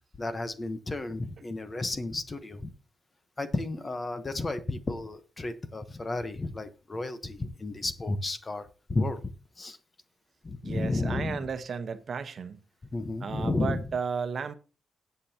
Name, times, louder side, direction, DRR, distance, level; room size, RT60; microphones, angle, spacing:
voice 1, 0.2-2.7 3.4-9.8 10.4-11.5 12.9-13.9, left 2 dB, 25° left, 1.0 m, -32 dB
voice 2, 10.6-12.6 13.2-14.6, right 6 dB, 50° right, 1.0 m, -34 dB
18.0 x 6.9 x 2.9 m
cardioid pair, 130°, 0 cm